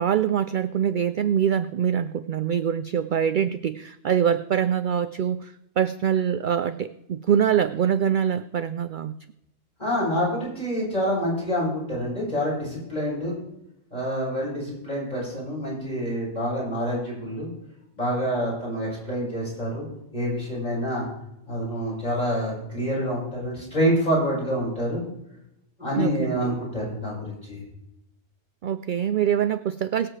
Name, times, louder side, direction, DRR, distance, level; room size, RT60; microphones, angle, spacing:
voice 1, 0.0-9.1 26.0-26.4 28.6-30.1, right 9 dB, 60° right, 12 dB, 0.5 m, -24 dB
voice 2, 9.8-13.4 13.9-17.5 17.9-19.9 20.1-21.1 21.5-25.0 25.8-27.6, equal, 35° left, -6 dB, 6.2 m, -27 dB
22.5 x 7.8 x 3.3 m, 0.84 s
omnidirectional pair, 1.2 m